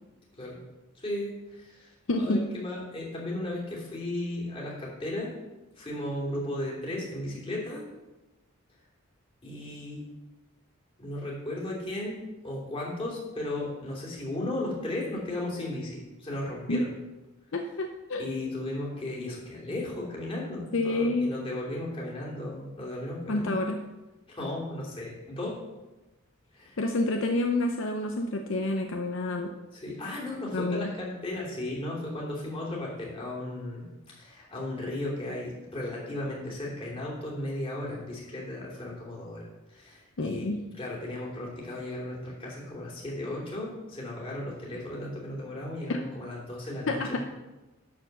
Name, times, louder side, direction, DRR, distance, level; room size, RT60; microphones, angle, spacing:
voice 1, 0.9-5.3 5.7-7.8 9.4-10.0 11.0-16.9 18.2-23.5 24.3-25.7 26.5-26.8 29.7-47.2, left 1 dB, 25° left, -4 dB, 3.0 m, -35 dB
voice 2, 2.1-2.4 16.7-16.8 17.5-18.3 20.7-21.3 23.3-23.8 26.8-29.5 30.5-30.9 40.2-40.6 45.9-46.0 46.9-47.2, left 2 dB, 60° left, 4 dB, 0.7 m, -28 dB
11.5 x 4.6 x 7.3 m, 1.1 s
head